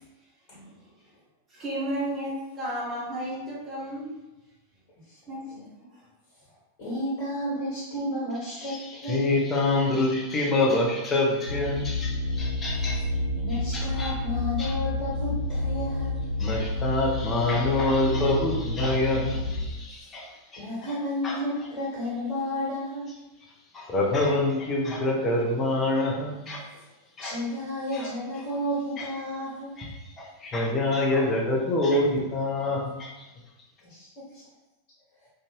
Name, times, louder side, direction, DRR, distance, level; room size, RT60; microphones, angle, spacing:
voice 1, 1.5-4.1 5.3-5.6, right 1 dB, 20° right, -7 dB, 1.1 m, -33 dB
voice 2, 6.8-9.3 13.3-16.2 20.6-23.1 27.2-29.7 33.8-34.4, left 1 dB, 40° left, -8 dB, 1.2 m, -32 dB
voice 3, 8.5-13.0 13.5-14.2 14.6-14.7 16.4-20.9 21.2-21.4 23.7-26.6 27.2-27.4 27.9-28.1 29.0-29.1 29.8-33.1, left 2 dB, 25° left, -2 dB, 0.6 m, -26 dB
sound 1, 11.5-19.6, left 2 dB, 80° right, 0.6 m, -29 dB
2.6 x 2.3 x 3.0 m, 1.0 s
figure-of-eight pair, 90°, 0 cm